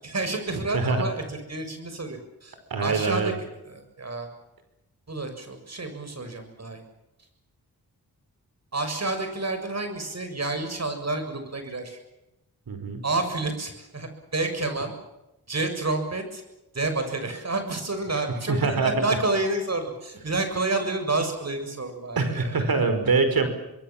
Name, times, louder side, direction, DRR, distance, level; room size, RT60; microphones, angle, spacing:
voice 1, 0.0-3.3 3.6-4.3 5.1-6.8 8.7-12.0 13.0-14.9 15.5-16.4 16.7-22.5, right 2 dB, 45° right, 7 dB, 6.9 m, -29 dB
voice 2, 0.7-1.0 2.7-3.3 12.7-13.0 18.5-18.9 22.2-23.5, right 4 dB, 70° right, 8 dB, 5.2 m, -24 dB
26.0 x 21.5 x 7.4 m, 0.95 s
cardioid pair, 60°, 37 cm